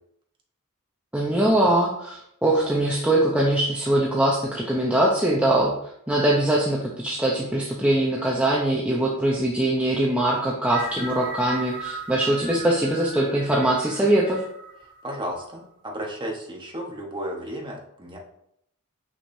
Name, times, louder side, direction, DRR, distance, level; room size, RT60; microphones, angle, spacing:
voice 1, 1.1-5.7 6.1-14.4, right 1 dB, 5° right, -4 dB, 0.8 m, -22 dB
sound 1, 10.7-15.4, right 4 dB, 40° right, 2.8 m, -37 dB
voice 2, 15.0-18.2, equal, 20° right, -1 dB, 1.3 m, -33 dB
6.4 x 6.1 x 2.7 m, 0.72 s
head